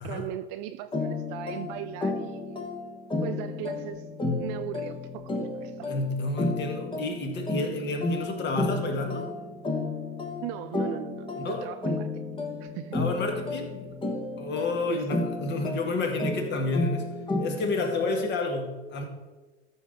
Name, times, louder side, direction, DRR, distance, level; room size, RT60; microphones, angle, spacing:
voice 1, 0.0-2.6 3.2-4.0 4.4-5.9 10.4-12.1 12.6-13.0 14.9-15.2, right 12 dB, 35° right, 10 dB, 0.4 m, -38 dB
sound 1, 0.9-18.4, left 2 dB, 15° left, 1.5 m, -32 dB
voice 2, 5.9-9.3 11.4-11.7 12.9-14.0 14.4-17.1 17.4-19.0, left 3 dB, 30° left, 4 dB, 1.8 m, -30 dB
13.5 x 6.4 x 3.7 m, 1.3 s
hypercardioid pair, 100°, 35 cm